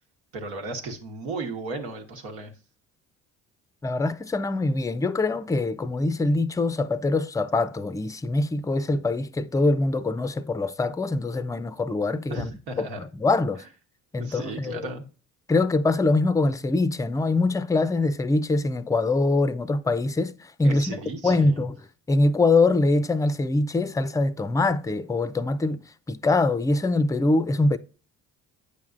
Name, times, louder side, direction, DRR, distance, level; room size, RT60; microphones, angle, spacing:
voice 1, 0.3-2.5 12.3-13.0 14.2-15.0 20.6-21.6, right 3 dB, 80° right, 1.3 m, -35 dB
voice 2, 3.8-12.5 12.8-13.6 14.1-14.9 15.5-21.0 21.2-21.7 22.1-27.8, left 2 dB, 10° left, 0.5 m, -23 dB
8.3 x 5.9 x 2.5 m
supercardioid pair, 70°, 37 cm